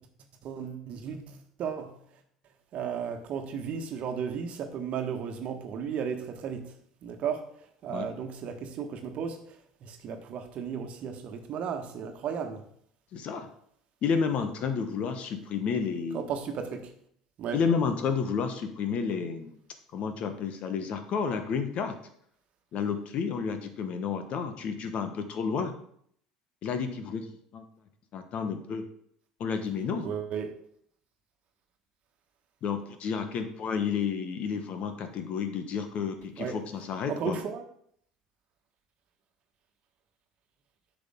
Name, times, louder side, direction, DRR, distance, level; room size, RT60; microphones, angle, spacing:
voice 1, 0.4-2.0 2.7-7.4 7.8-9.4 9.8-12.6 16.1-16.9 17.4-17.6 30.0-30.5 36.4-36.6 37.1-37.6, right 7 dB, 50° right, 6 dB, 1.3 m, -34 dB
voice 2, 13.1-13.5 14.0-16.3 17.5-19.6 19.9-22.0 22.7-25.7 26.6-27.3 27.5-27.6 28.1-28.9 29.4-30.1 32.6-37.4, left 6 dB, 50° left, 8 dB, 1.2 m, -31 dB
10.0 x 6.3 x 3.7 m, 0.67 s
figure-of-eight pair, 65°, 3 cm